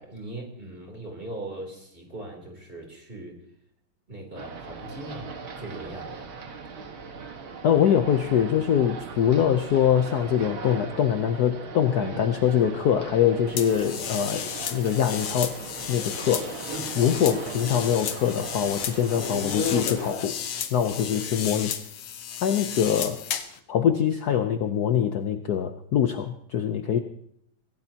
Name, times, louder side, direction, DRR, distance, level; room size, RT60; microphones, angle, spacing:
voice 1, 0.0-3.4 4.1-6.4 12.0-12.2 16.7-17.0 21.0-21.5, right 2 dB, 25° right, 1 dB, 3.4 m, -39 dB
sound 1, 4.4-20.1, right 5 dB, 75° right, 2.4 m, -39 dB
voice 2, 7.6-15.5 15.9-16.7 17.0-20.4 20.7-21.7 22.4-23.2 23.7-27.0, left 9 dB, 60° left, 7 dB, 1.1 m, -23 dB
sound 2, 13.6-23.6, left 8 dB, 85° left, 1.9 m, -33 dB
25.0 x 16.5 x 2.9 m, 0.70 s
omnidirectional pair, 2.3 m